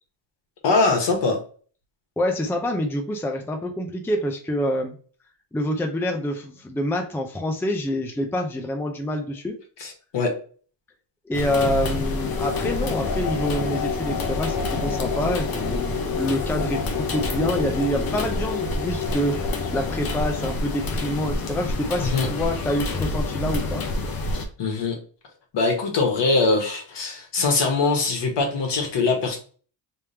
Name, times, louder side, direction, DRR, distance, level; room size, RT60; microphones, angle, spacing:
voice 1, 0.6-1.4 9.8-10.4 22.0-22.3 24.6-25.0 25.5-29.4, left 3 dB, 65° left, 1 dB, 1.4 m, -22 dB
voice 2, 2.2-5.0 5.5-9.6 11.3-19.4 19.7-23.8, left 1 dB, 5° left, 3 dB, 0.5 m, -26 dB
sound 1, 11.3-24.5, left 3 dB, 50° left, 0.8 m, -27 dB
3.4 x 3.2 x 2.8 m, 0.42 s
cardioid pair, 135°, 45 cm